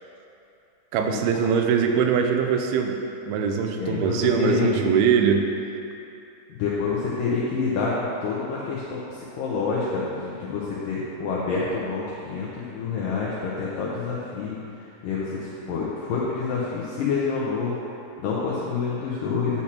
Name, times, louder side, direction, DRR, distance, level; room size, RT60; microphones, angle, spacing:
voice 1, 0.9-3.0 3.3-5.5, right 6 dB, 80° right, 4 dB, 2.5 m, -22 dB
voice 2, 3.7-4.9 6.5-14.6 15.0-17.8 18.2-19.6, left 4 dB, 75° left, -6 dB, 2.0 m, -27 dB
9.7 x 7.2 x 2.9 m, 2.7 s
omnidirectional pair, 4.7 m